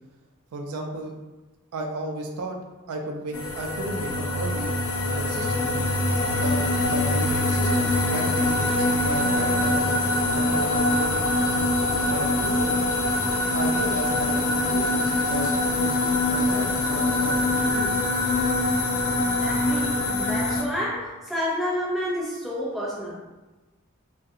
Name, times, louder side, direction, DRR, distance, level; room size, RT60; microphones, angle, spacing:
voice 1, 0.5-1.1 1.7-2.6 2.9-4.7 5.1-5.9 6.3-6.5 6.9-9.9 10.3-12.7 13.5-18.0, right 2 dB, 90° right, 2 dB, 0.4 m, -34 dB
sound 1, 3.3-20.6, left 2 dB, 70° left, 0.4 m, -24 dB
voice 2, 19.4-23.2, equal, ahead, -7 dB, 0.4 m, -29 dB
2.4 x 2.1 x 2.7 m, 1.1 s
head